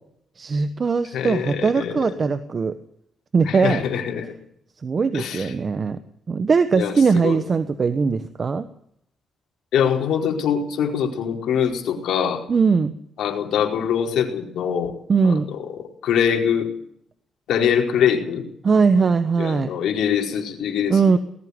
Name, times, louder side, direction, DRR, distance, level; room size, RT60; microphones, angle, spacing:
voice 1, 0.4-2.7 3.3-3.8 4.8-6.0 6.3-8.7 12.5-12.9 15.1-15.5 18.6-19.7 20.9-21.2, right 5 dB, 35° right, 11 dB, 1.2 m, -20 dB
voice 2, 1.1-2.2 3.4-4.3 5.1-5.5 6.7-7.4 9.7-12.4 13.2-14.9 15.2-15.6 16.0-16.7 17.5-18.4 19.4-21.2, left 8 dB, 85° left, 4 dB, 4.6 m, -23 dB
20.0 x 14.5 x 9.7 m, 0.69 s
cardioid pair, 130°, 0 cm